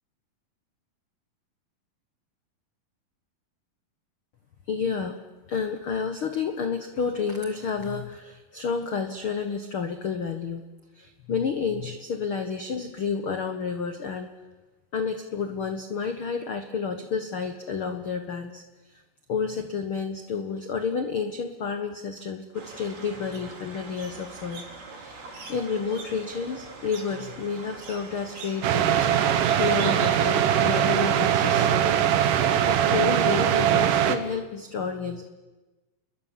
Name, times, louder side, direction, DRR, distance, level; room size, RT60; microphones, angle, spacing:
voice 1, 4.7-5.2 5.5-10.6 10.9-14.3 14.9-18.6 18.9-19.0 19.3-24.7 24.9-29.1 29.6-31.8 32.7-35.3, left 5 dB, 75° left, 7 dB, 1.2 m, -30 dB
Sonidos de la Naturaleza, 22.5-30.5, right 3 dB, 90° right, 6.3 m, -42 dB
sound 1, 28.6-34.2, right 10 dB, 65° right, 2.7 m, -21 dB
29.0 x 21.5 x 7.3 m, 1.2 s
omnidirectional pair, 4.4 m